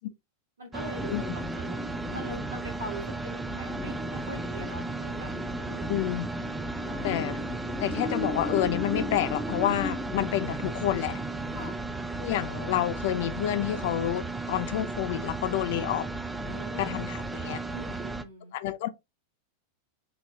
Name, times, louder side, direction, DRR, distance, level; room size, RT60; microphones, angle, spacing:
voice 1, 0.6-1.8 2.1-6.0 6.8-7.3 11.5-11.8 16.4-17.0 17.7-18.5, right 1 dB, 65° right, 1.2 m, -42 dB
sound 1, 0.7-18.2, right 3 dB, 10° right, 0.4 m, -35 dB
sound 2, 0.9-11.7, left 2 dB, 10° left, 0.8 m, -37 dB
voice 2, 5.9-6.3 7.0-7.4 7.8-11.2 12.2-16.1 16.8-17.6 18.5-18.9, left 12 dB, 50° left, 0.4 m, -29 dB
4.8 x 2.9 x 2.7 m
figure-of-eight pair, 90°, 0 cm